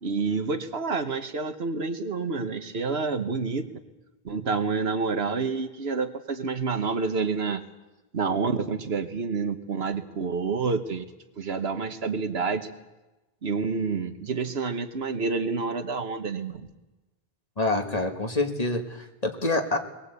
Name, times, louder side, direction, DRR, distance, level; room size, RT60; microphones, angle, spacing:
voice 1, 0.0-3.7 4.2-7.6 8.1-11.0 11.4-12.7 13.4-16.6, right 4 dB, 85° right, 8 dB, 1.5 m, -28 dB
voice 2, 17.6-19.8, left 2 dB, 40° left, 4 dB, 1.9 m, -26 dB
21.5 x 18.0 x 8.3 m, 1.1 s
omnidirectional pair, 1.0 m